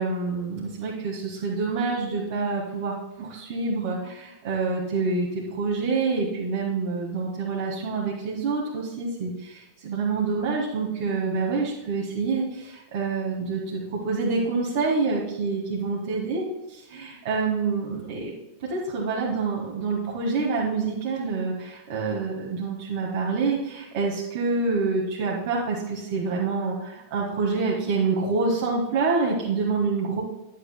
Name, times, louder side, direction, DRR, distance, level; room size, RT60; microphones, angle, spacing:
voice 1, 0.0-16.4 16.9-18.3 18.6-30.2, right 4 dB, 55° right, -4 dB, 1.7 m, -27 dB
11.0 x 9.2 x 2.2 m, 0.95 s
figure-of-eight pair, 90°, 0 cm